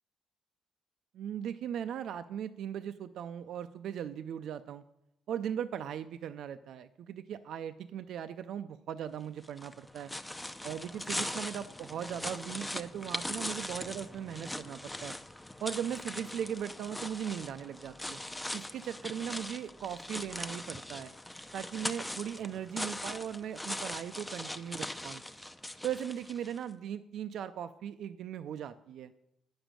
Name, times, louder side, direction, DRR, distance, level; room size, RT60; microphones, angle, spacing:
voice 1, 1.1-4.8 5.3-10.1 10.6-15.1 15.6-18.2 18.5-21.1 21.5-25.2 25.8-29.1, right 9 dB, 75° right, 10 dB, 0.4 m, -38 dB
sound 1, 9.4-26.6, left 1 dB, 10° left, 0.6 m, -40 dB
9.7 x 5.2 x 7.4 m, 0.84 s
cardioid pair, 90°, 0 cm